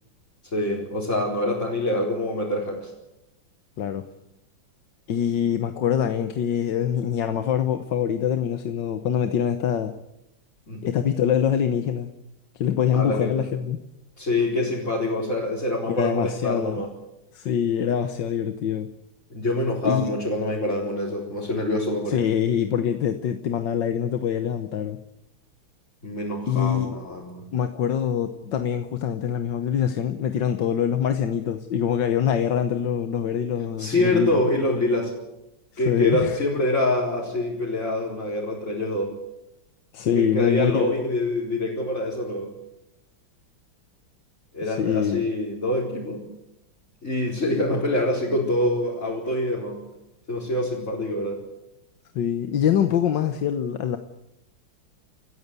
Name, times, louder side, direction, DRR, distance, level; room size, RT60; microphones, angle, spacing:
voice 1, 0.5-2.9 10.7-10.8 12.9-13.5 14.2-16.9 19.3-22.2 26.0-27.4 33.8-35.1 35.8-39.1 40.1-42.5 44.5-46.2 47.0-49.8 50.3-51.4, left 1 dB, 35° left, -5 dB, 4.9 m, -25 dB
voice 2, 3.8-4.1 5.1-9.9 10.8-12.1 12.5-13.8 15.9-16.8 17.3-18.9 19.8-20.1 22.1-25.0 26.5-27.0 27.5-34.4 35.9-36.4 39.9-40.9 44.6-45.2 52.1-54.0, left 8 dB, 65° left, 8 dB, 1.6 m, -24 dB
28.5 x 14.5 x 8.2 m, 0.90 s
omnidirectional pair, 2.2 m